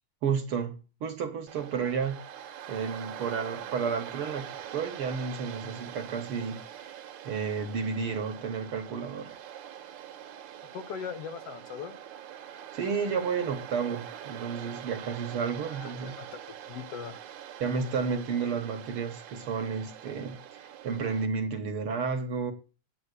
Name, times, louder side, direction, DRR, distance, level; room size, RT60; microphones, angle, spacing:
voice 1, 0.2-2.2 2.7-7.0 7.2-9.4 12.7-16.2 17.6-22.5, right 5 dB, 55° right, 1.8 m, -32 dB
Waves surf, 1.5-21.3, right 10 dB, 70° right, 2.3 m, -44 dB
voice 2, 10.7-12.0 15.7-16.4 16.7-17.2, left 7 dB, 65° left, 1.7 m, -40 dB
9.7 x 8.7 x 8.2 m
omnidirectional pair, 3.6 m